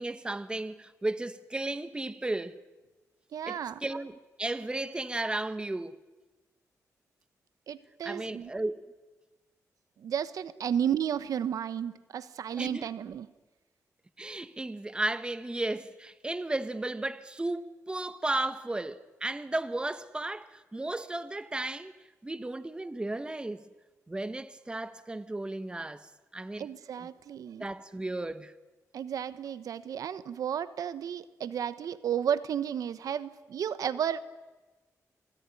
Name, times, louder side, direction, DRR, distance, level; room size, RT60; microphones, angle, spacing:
voice 1, 0.0-2.6 3.5-6.0 8.0-8.9 12.6-12.9 14.2-21.9 22.2-23.7 24.1-26.7 27.6-28.5, right 2 dB, 15° right, 1.2 m, -34 dB
voice 2, 3.3-3.8 7.7-8.5 10.0-13.3 26.6-27.7 28.9-34.2, right 9 dB, 80° right, 1.0 m, -33 dB
28.0 x 19.0 x 9.8 m
cardioid pair, 105°, 6 cm